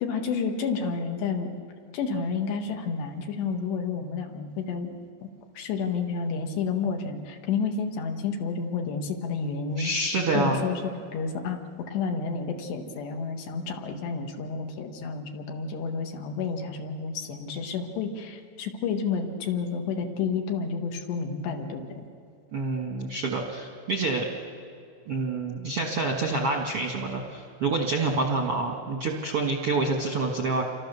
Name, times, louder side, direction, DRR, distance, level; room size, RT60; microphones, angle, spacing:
voice 1, 0.0-1.5 1.9-4.9 5.2-5.3 5.6-9.9 10.3-11.6 11.9-21.9, left 5 dB, 75° left, 4 dB, 3.8 m, -30 dB
voice 2, 9.8-10.6 22.5-24.2 25.1-30.6, right 3 dB, 60° right, 0 dB, 1.5 m, -27 dB
29.0 x 24.5 x 6.9 m, 2.3 s
omnidirectional pair, 5.0 m